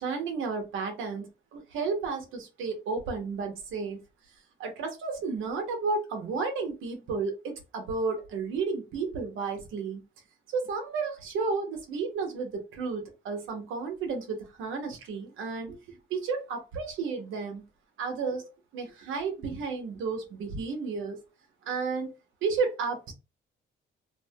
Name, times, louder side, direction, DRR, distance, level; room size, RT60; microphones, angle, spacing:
voice 1, 0.0-4.0 4.6-10.0 10.5-17.6 18.0-21.2 21.6-22.2 22.4-23.1, right 4 dB, 85° right, 0.8 m, -32 dB
2.6 x 2.1 x 2.7 m
cardioid pair, 90°, 20 cm